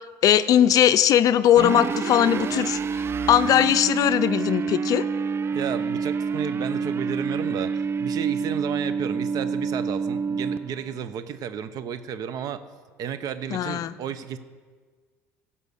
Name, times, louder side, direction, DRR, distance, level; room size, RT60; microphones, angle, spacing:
voice 1, 0.2-3.0 3.3-5.1 13.5-14.0, left 11 dB, 50° left, 14 dB, 0.5 m, -19 dB
sound 1, 1.6-11.0, right 5 dB, 35° right, 0.4 m, -27 dB
voice 2, 5.5-12.6 13.0-14.4, right 8 dB, 55° right, 12 dB, 0.8 m, -32 dB
16.0 x 5.6 x 6.5 m, 1.5 s
supercardioid pair, 85°, 8 cm